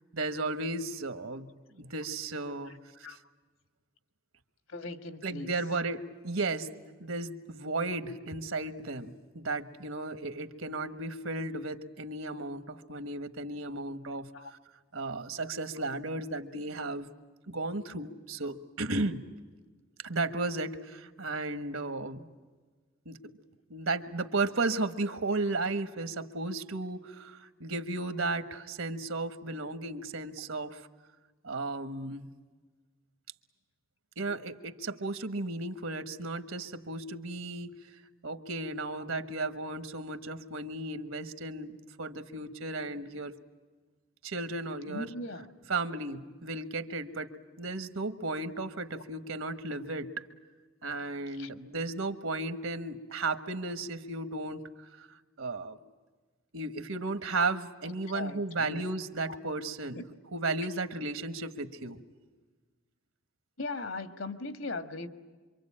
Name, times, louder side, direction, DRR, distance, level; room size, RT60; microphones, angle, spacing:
voice 1, 0.1-1.5 1.8-3.2 5.2-14.3 14.9-17.1 17.5-19.2 20.0-22.3 23.0-23.4 23.7-30.8 31.4-32.3 34.2-37.8 38.2-43.3 44.2-45.1 45.7-47.3 47.6-50.3 50.8-54.6 55.0-55.1 55.4-55.8 56.5-60.0 60.3-62.0, right 3 dB, 85° right, 10 dB, 1.4 m, -34 dB
voice 2, 4.7-5.5 14.3-14.5 44.9-45.5 51.3-51.5 58.1-58.8 59.9-60.0 63.6-65.1, left 2 dB, 80° left, 9 dB, 1.7 m, -39 dB
26.5 x 24.5 x 8.7 m, 1.4 s
head